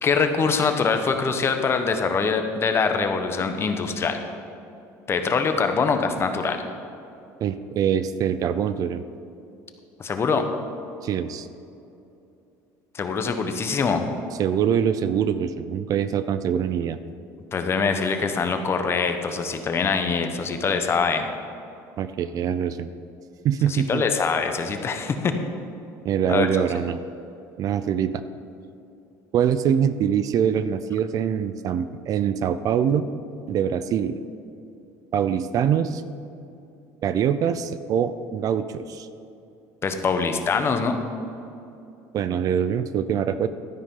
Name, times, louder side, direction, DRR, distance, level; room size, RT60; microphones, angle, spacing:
voice 1, 0.0-4.2 5.1-6.6 10.0-10.5 12.9-14.0 17.5-21.3 23.7-25.3 26.3-26.5 39.8-41.0, left 5 dB, 35° left, 6 dB, 1.0 m, -23 dB
voice 2, 7.4-9.0 11.0-11.5 14.4-17.0 22.0-22.9 23.4-24.0 26.0-27.0 27.6-28.2 29.3-33.1 33.5-34.2 35.1-36.0 37.0-39.1 42.1-43.5, right 8 dB, 50° right, 13 dB, 0.5 m, -24 dB
12.5 x 9.7 x 3.8 m, 2.7 s
cardioid pair, 115°, 8 cm